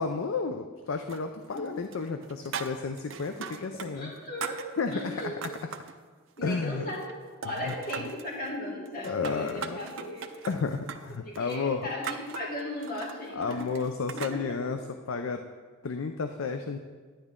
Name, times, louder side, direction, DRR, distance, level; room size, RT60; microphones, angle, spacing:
voice 1, 0.0-4.1 4.8-5.5 6.4-6.8 7.6-8.1 9.0-9.8 10.5-11.9 13.3-15.4 15.8-16.8, left 4 dB, 70° left, 7 dB, 0.5 m, -32 dB
sound 1, 1.1-1.7 1.9-3.9 4.2-5.9 6.4-7.2 7.4-8.3 8.9-14.4, right 6 dB, 65° right, 0.6 m, -40 dB
voice 2, 3.9-4.6 4.9-5.4 6.4-10.3 11.2-13.7 14.1-14.6, left 1 dB, 45° left, -3 dB, 2.3 m, -37 dB
10.5 x 10.0 x 3.7 m, 1.5 s
head